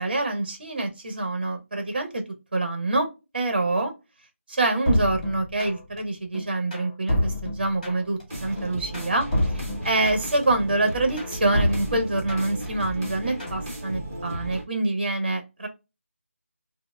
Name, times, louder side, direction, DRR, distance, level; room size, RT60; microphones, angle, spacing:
voice 1, 0.0-2.2 2.5-3.1 3.3-3.9 4.5-15.7, right 2 dB, 45° right, 5 dB, 0.9 m, -26 dB
sound 1, 4.9-6.0 6.3-8.2 8.6-10.4 10.8-12.7 13.0-13.6, left 1 dB, 30° left, 1.4 m, -28 dB
sound 2, 8.3-14.6, right 1 dB, 15° right, 1.0 m, -35 dB
4.3 x 2.1 x 2.3 m, 0.26 s
figure-of-eight pair, 175°, 7 cm